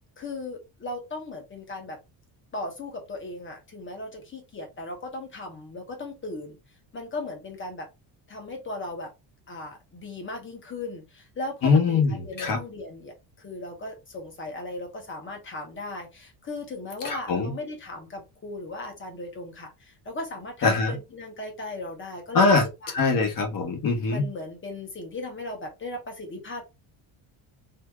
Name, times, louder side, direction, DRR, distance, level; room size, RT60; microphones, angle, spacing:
voice 1, 0.2-2.0 2.5-6.6 6.9-7.9 8.3-9.1 9.5-22.9 24.1-26.6, left 2 dB, 25° left, 1.1 m, -37 dB
voice 2, 11.6-12.6 17.0-17.5 20.6-20.9 22.3-22.6 22.9-24.3, left 4 dB, 45° left, 1.2 m, -22 dB
2.8 x 2.7 x 3.5 m
cardioid pair, 165°, 48 cm